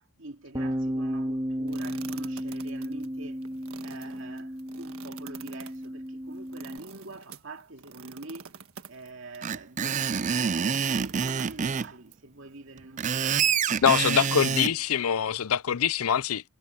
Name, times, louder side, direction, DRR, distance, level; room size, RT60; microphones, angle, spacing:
voice 1, 0.0-3.4 3.8-8.5 8.9-13.5 14.1-14.5, right 2 dB, 60° right, 2.5 m, -45 dB
Bass guitar, 0.5-6.8, equal, 20° right, 2.4 m, -33 dB
sound 1, 1.7-10.2 10.7-12.1, right 6 dB, 75° right, 1.5 m, -48 dB
Screech, 9.4-11.9 12.8-14.7, right 7 dB, 35° right, 0.4 m, -26 dB
voice 2, 13.8-16.4, left 8 dB, 80° left, 0.5 m, -24 dB
head